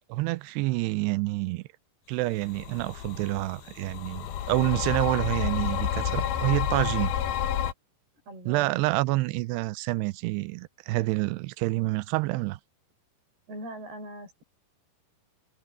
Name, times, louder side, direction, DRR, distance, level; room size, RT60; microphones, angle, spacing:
voice 1, 0.1-1.6 2.1-7.1 8.5-12.6, right 20 dB, 85° right, 2.7 m, -28 dB
sound 1, 2.5-7.7, left 9 dB, 70° left, 3.0 m, -30 dB
voice 2, 8.3-8.8 13.5-14.4, right 1 dB, 70° right, 8.8 m, -41 dB
omnidirectional pair, 4.7 m